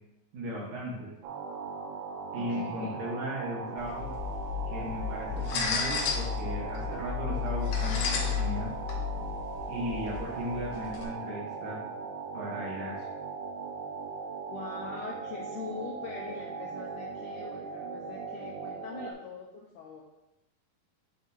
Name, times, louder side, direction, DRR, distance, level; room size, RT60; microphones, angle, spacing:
voice 1, 0.3-1.1 2.3-4.1 4.7-8.7 9.7-11.8 12.3-13.0, equal, 60° right, -4 dB, 2.5 m, -36 dB
sound 1, 1.2-19.1, right 5 dB, 85° right, 2.6 m, -39 dB
voice 2, 2.4-2.9 14.5-20.0, left 5 dB, 90° left, -1 dB, 1.7 m, -42 dB
sound 2, 3.8-11.0, left 6 dB, 70° left, 2.1 m, -33 dB
8.3 x 3.7 x 4.0 m, 0.94 s
omnidirectional pair, 4.4 m